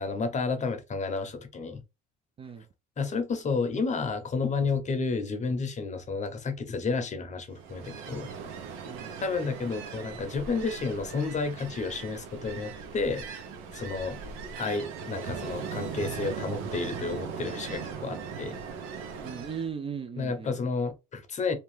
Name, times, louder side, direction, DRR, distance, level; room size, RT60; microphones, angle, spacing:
voice 1, 0.0-1.8 3.0-8.3 9.2-13.2 13.7-14.2 14.6-18.6 20.2-21.6, left 4 dB, 35° left, 0.7 m, -31 dB
Ocean, 7.5-19.7, right 6 dB, 80° right, 0.7 m, -39 dB
voice 2, 19.2-20.6, right 6 dB, 25° right, 0.4 m, -38 dB
2.7 x 2.3 x 3.2 m
cardioid pair, 100°, 21 cm